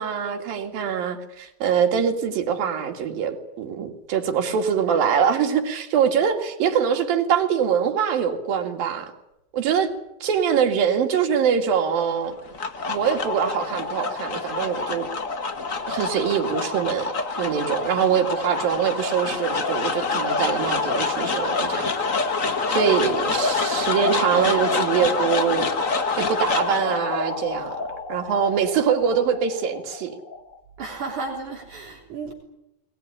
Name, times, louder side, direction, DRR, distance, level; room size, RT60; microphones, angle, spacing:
voice 1, 0.0-9.1 9.5-9.9 10.2-12.4 12.9-15.1 15.9-21.9 22.7-25.7 26.2-27.8 28.1-30.1, right 7 dB, 85° right, 4 dB, 3.9 m, -23 dB
sound 1, 12.3-30.6, left 4 dB, 40° left, 1.2 m, -27 dB
voice 2, 30.8-32.3, right 3 dB, 60° right, 0 dB, 4.9 m, -33 dB
21.0 x 20.5 x 10.0 m, 0.88 s
omnidirectional pair, 4.0 m